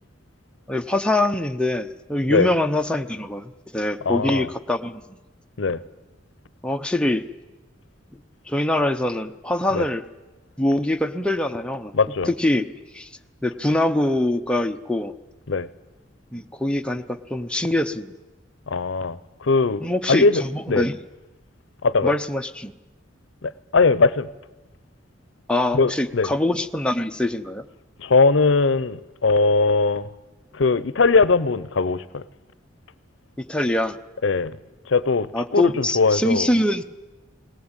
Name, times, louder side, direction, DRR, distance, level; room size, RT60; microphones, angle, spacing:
voice 1, 0.7-5.0 6.6-7.2 8.5-10.0 10.6-11.9 12.3-12.7 12.9-13.1 13.4-15.1 16.3-18.1 19.8-21.0 22.0-22.7 25.5-27.6 33.4-34.0 35.3-36.8, left 1 dB, 5° left, 5 dB, 0.7 m, -24 dB
voice 2, 4.1-4.5 5.6-5.8 9.7-9.9 11.9-12.3 15.5-15.7 18.7-20.9 21.8-22.1 23.4-24.3 25.7-26.3 28.0-30.1 30.5-32.2 34.2-34.5 34.9-36.5, left 4 dB, 75° left, 18 dB, 0.7 m, -20 dB
19.0 x 18.5 x 9.0 m, 1.1 s
head